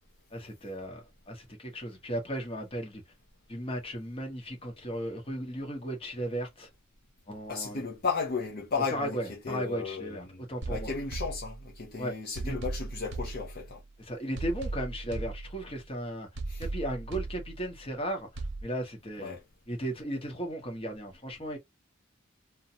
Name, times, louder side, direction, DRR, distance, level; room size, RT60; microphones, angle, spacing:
voice 1, 0.3-3.0 3.5-6.7 7.3-7.8 8.9-10.9 12.0-12.2 12.4-12.6 14.0-16.3 16.6-19.3 19.7-21.6, right 1 dB, 30° left, 1.0 m, -36 dB
voice 2, 7.5-10.4 10.7-13.8 16.5-16.6 19.2-19.4, left 4 dB, 50° left, 0.6 m, -34 dB
sound 1, 10.6-11.9 12.4-13.9 14.4-15.9 16.4-17.9 18.4-18.6, right 2 dB, 60° right, 0.8 m, -38 dB
2.6 x 2.2 x 2.7 m
head